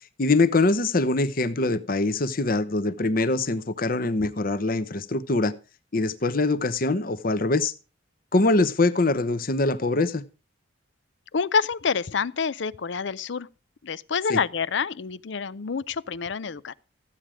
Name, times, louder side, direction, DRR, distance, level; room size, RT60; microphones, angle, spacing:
voice 1, 0.2-5.5 5.9-7.7 8.3-10.2 14.3-14.4, left 2 dB, 45° left, 0.9 m, -23 dB
voice 2, 11.3-13.5 13.8-16.7, left 5 dB, 65° left, 0.5 m, -27 dB
14.5 x 9.0 x 4.9 m
head